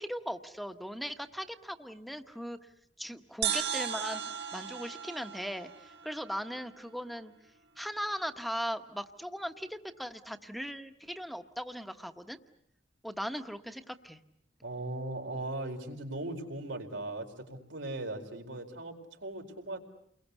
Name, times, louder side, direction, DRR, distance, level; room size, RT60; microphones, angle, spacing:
voice 1, 0.0-2.7 3.0-7.3 7.8-12.4 13.0-14.2, equal, ahead, 8 dB, 1.1 m, -39 dB
sound 1, 3.4-6.9, right 8 dB, 65° right, 1.9 m, -36 dB
voice 2, 14.6-19.8, right 2 dB, 90° right, 2 dB, 4.5 m, -38 dB
30.0 x 22.0 x 8.3 m, 0.71 s
head